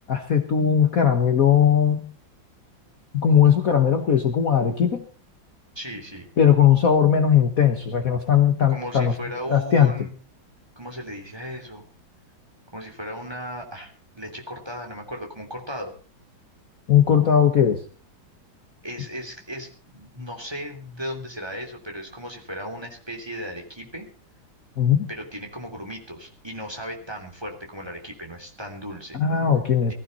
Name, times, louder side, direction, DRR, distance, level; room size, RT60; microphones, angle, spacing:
voice 1, 0.1-2.0 3.1-5.0 6.4-9.1 9.5-9.9 16.9-17.8 24.8-25.0 29.2-29.9, left 8 dB, 50° left, 7 dB, 1.6 m, -18 dB
voice 2, 5.7-6.3 8.7-10.1 10.8-11.8 12.7-15.9 18.8-24.1 25.1-29.2, equal, 10° right, 3 dB, 3.1 m, -36 dB
19.5 x 14.5 x 4.2 m, 0.38 s
omnidirectional pair, 2.1 m